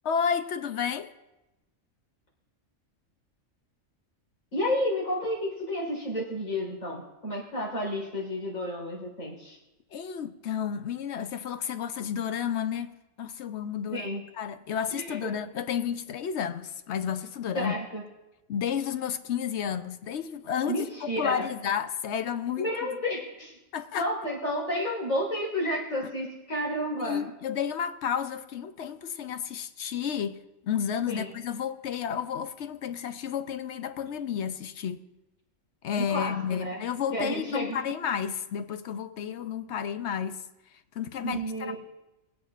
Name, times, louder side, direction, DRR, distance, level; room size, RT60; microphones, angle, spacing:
voice 1, 0.0-1.1 9.9-12.9 13.2-17.8 18.5-22.7 23.7-24.1 27.0-35.0 35.8-40.4 40.9-41.8, left 8 dB, 60° left, 0.9 m, -31 dB
voice 2, 4.5-9.6 13.9-14.2 14.9-15.2 17.6-18.0 20.7-21.5 22.6-23.6 23.9-27.2 31.1-31.3 35.9-36.7 37.1-37.9 41.2-41.8, equal, 85° left, 4.6 m, -31 dB
25.0 x 8.5 x 2.5 m
omnidirectional pair, 1.4 m